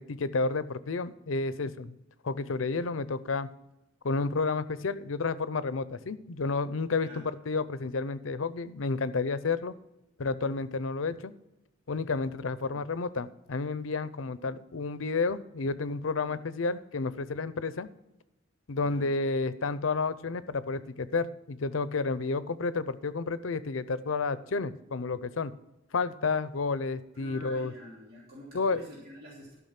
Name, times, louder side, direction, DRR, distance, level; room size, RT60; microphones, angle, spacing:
voice 1, 0.0-2.0 2.2-3.5 4.0-9.7 10.2-11.3 11.9-17.9 18.7-25.5 25.9-27.7 28.5-28.8, left 4 dB, 80° left, 15 dB, 0.6 m, -31 dB
voice 2, 18.8-19.1 27.1-29.6, equal, 50° right, -6 dB, 3.0 m, -47 dB
12.5 x 6.1 x 5.8 m, 0.95 s
head